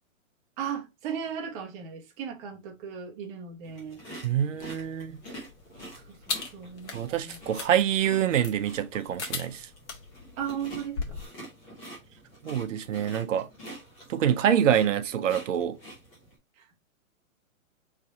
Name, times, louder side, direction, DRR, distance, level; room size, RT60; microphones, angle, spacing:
voice 1, 0.6-4.0 6.0-7.4 10.4-11.2 16.6-16.7, right 8 dB, 25° right, 0.9 m, -37 dB
sound 1, 3.6-16.3, right 1 dB, 5° left, 0.4 m, -47 dB
voice 2, 4.2-5.2 6.9-9.7 12.4-13.5 14.1-15.8, right 9 dB, 65° right, 0.7 m, -26 dB
sound 2, 4.6-11.3, left 5 dB, 55° left, 1.3 m, -40 dB
3.3 x 2.8 x 4.6 m
hypercardioid pair, 145°, 41 cm